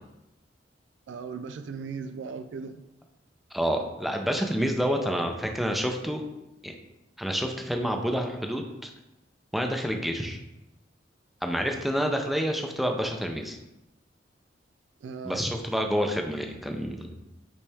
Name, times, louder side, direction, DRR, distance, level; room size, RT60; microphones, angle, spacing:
voice 1, 1.1-2.8 15.0-15.4, right 5 dB, 85° right, 8 dB, 0.4 m, -37 dB
voice 2, 3.5-6.2 6.6-6.8 7.2-8.9 9.5-10.4 11.4-13.6 15.2-17.1, equal, ahead, 3 dB, 0.6 m, -28 dB
8.3 x 3.3 x 3.4 m, 0.94 s
head